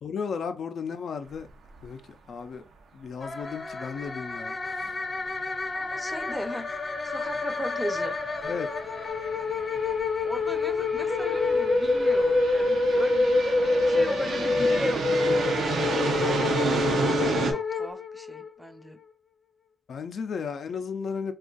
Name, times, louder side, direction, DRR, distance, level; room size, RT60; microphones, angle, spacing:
voice 1, 0.0-1.5 1.8-2.0 2.3-2.6 2.9-4.9 8.4-8.7 19.9-21.3, left 6 dB, 75° left, 0.4 m, -34 dB
sound 1, 1.4-1.5 1.8-1.9 5.9-6.0 7.1-7.3 8.0-17.5, right 4 dB, 90° right, 0.6 m, -31 dB
sound 2, 3.2-18.5, left 3 dB, 40° left, 0.7 m, -27 dB
voice 2, 5.7-8.2 10.2-15.1 15.8-16.5 16.8-19.0, equal, 5° right, 0.5 m, -39 dB
2.6 x 2.3 x 3.7 m
cardioid pair, 80°, 0 cm